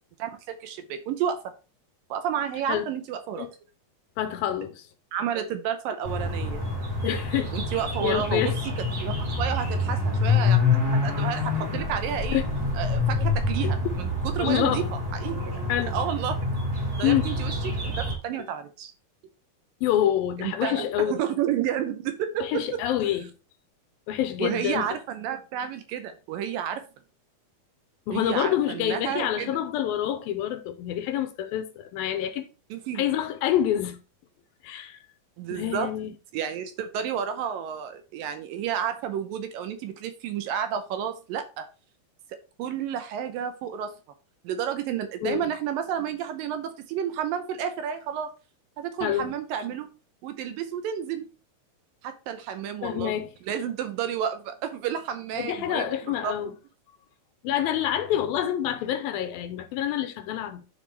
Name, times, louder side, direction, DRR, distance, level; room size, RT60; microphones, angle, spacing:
voice 1, 0.2-1.4 2.1-3.5 5.1-6.6 7.5-8.7 9.0-12.4 12.8-16.4 17.0-18.9 20.4-22.8 24.4-26.8 28.1-29.5 32.7-33.1 35.4-35.9 36.3-41.7 42.3-43.9 44.4-48.3 48.8-49.9 50.2-51.3 52.0-53.1 53.5-55.9 56.2-56.5, right 9 dB, 75° right, 2.3 m, -31 dB
voice 2, 4.2-4.9 7.0-7.5 8.0-8.5 12.3-12.4 13.6-13.7 14.4-14.9 15.7-16.0 17.0-17.3 19.8-21.1 22.4-23.3 24.1-24.9 28.1-32.5 33.0-34.0 34.6-35.0 35.5-36.1 45.2-45.5 49.0-49.3 52.8-53.3 55.4-56.5 57.4-60.6, left 11 dB, 80° left, 2.5 m, -27 dB
sound 1, 6.0-18.1, left 3 dB, 40° right, 4.1 m, -27 dB
10.5 x 5.1 x 3.3 m
omnidirectional pair, 4.4 m